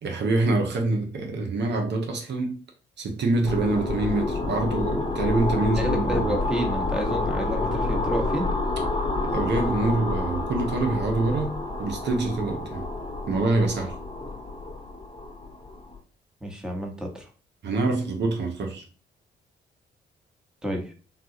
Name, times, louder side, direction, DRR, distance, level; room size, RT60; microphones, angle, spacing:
voice 1, 0.0-2.6 3.0-6.2 9.2-12.8 13.3-13.9 17.6-18.8, right 2 dB, 65° right, 0.8 m, -25 dB
sound 1, 3.5-16.0, left 2 dB, 25° left, 0.7 m, -29 dB
voice 2, 5.7-8.5 16.4-17.3 20.6-20.9, right 1 dB, 5° right, 1.1 m, -29 dB
3.7 x 2.4 x 2.8 m
supercardioid pair, 55°, 20 cm